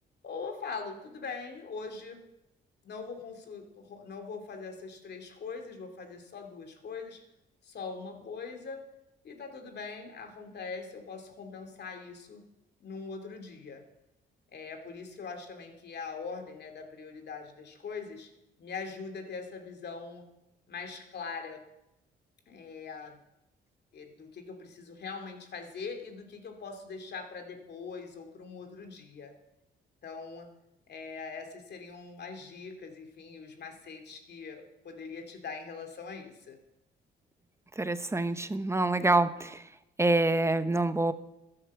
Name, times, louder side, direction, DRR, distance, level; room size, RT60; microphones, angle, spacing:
voice 1, 0.2-2.2 2.8-7.2 7.6-8.9 9.2-12.4 12.8-13.8 14.5-18.3 18.6-20.3 20.7-21.6 22.5-23.2 23.9-29.3 30.0-30.5 30.9-36.6, left 5 dB, 55° left, 4 dB, 2.7 m, -42 dB
voice 2, 37.8-39.6 40.0-41.1, right 2 dB, 15° right, 12 dB, 0.9 m, -26 dB
13.0 x 11.0 x 7.3 m, 0.91 s
cardioid pair, 90°, 20 cm